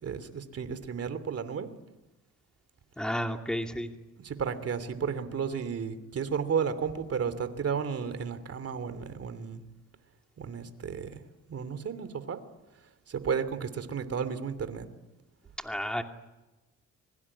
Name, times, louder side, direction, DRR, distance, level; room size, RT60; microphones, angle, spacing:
voice 1, 0.0-1.7 4.2-9.6 10.4-11.2 11.5-12.4 13.1-14.9, right 6 dB, 50° right, 12 dB, 2.9 m, -33 dB
voice 2, 3.0-3.9 15.6-16.0, equal, 5° left, 4 dB, 2.6 m, -32 dB
25.5 x 23.0 x 9.9 m, 1.1 s
cardioid pair, 90°, 30 cm